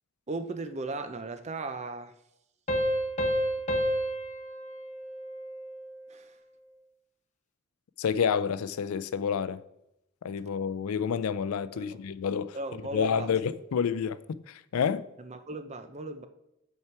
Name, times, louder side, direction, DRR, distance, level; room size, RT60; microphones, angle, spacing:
voice 1, 0.3-2.1 6.1-6.3 11.7-12.0 12.5-13.3 15.2-16.3, right 2 dB, 30° right, 0.5 m, -37 dB
Piano, 2.7-6.0, equal, 35° left, 0.9 m, -30 dB
voice 2, 8.0-9.6 10.2-12.6 12.9-15.1, left 7 dB, 85° left, 0.4 m, -29 dB
8.5 x 4.7 x 4.6 m
head